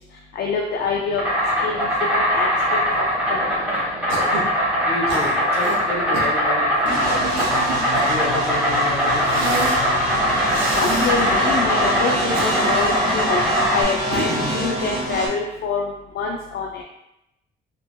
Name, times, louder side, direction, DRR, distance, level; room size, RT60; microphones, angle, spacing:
voice 1, 0.3-1.2 1.6-1.9 2.2-2.5 3.3-3.4 10.7-13.4 13.7-14.3 14.5-16.8, left 5 dB, 55° left, 1 dB, 0.4 m, -25 dB
Insect, 0.8-13.8, equal, 5° right, 1.3 m, -21 dB
Cough, 4.1-4.5 5.1-5.8 6.1-6.4 7.1-8.3 9.2-9.8 10.5-11.1 12.1-12.9 14.1-14.6, right 2 dB, 85° right, 0.7 m, -28 dB
voice 2, 4.8-7.3 7.9-10.1, left 2 dB, 30° left, -3 dB, 1.4 m, -30 dB
sound 1, 6.8-15.3, equal, 40° right, 1.4 m, -26 dB
3.2 x 2.9 x 2.2 m, 0.87 s
cardioid pair, 90°, 20 cm